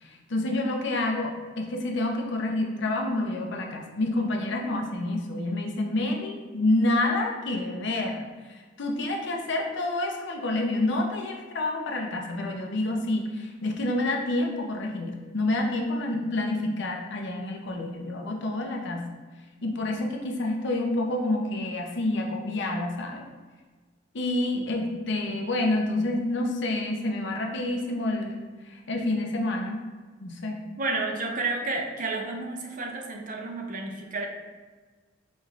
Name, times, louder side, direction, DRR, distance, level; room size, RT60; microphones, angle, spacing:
voice 1, 0.0-8.2 8.5-19.0 19.6-23.2 24.1-28.4 28.7-29.8 30.2-30.6, left 2 dB, 65° left, 2 dB, 0.6 m, -28 dB
voice 2, 30.8-34.3, right 3 dB, 45° right, 2 dB, 0.6 m, -31 dB
5.3 x 2.4 x 3.1 m, 1.4 s
head